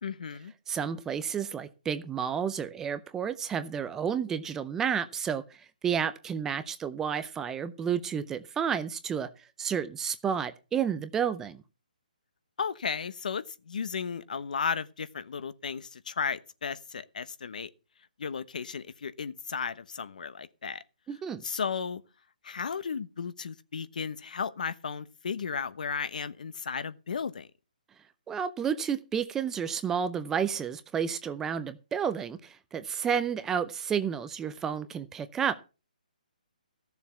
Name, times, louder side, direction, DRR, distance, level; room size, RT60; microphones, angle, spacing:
voice 1, 0.0-0.5 12.6-17.7 18.2-20.8 21.4-22.0 22.4-27.5, left 6 dB, 65° left, 1.1 m, -34 dB
voice 2, 0.7-11.6 21.1-21.4 28.3-35.6, right 7 dB, 10° right, 0.6 m, -31 dB
14.0 x 7.1 x 5.9 m
hypercardioid pair, 160°, 5 cm